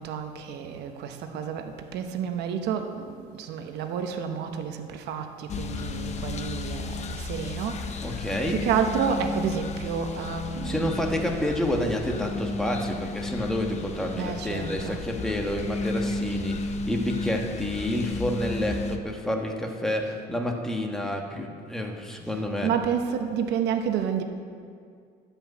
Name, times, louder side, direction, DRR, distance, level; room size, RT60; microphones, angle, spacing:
voice 1, 0.0-10.9 14.2-15.0 20.0-20.3 22.3-24.2, right 7 dB, 80° right, 6 dB, 0.9 m, -30 dB
sound 1, 5.5-19.0, left 2 dB, 40° left, 0.8 m, -33 dB
voice 2, 8.0-8.6 10.6-22.7, left 1 dB, 5° left, 1 dB, 1.4 m, -29 dB
12.0 x 5.4 x 8.2 m, 2.2 s
cardioid pair, 110°, 17 cm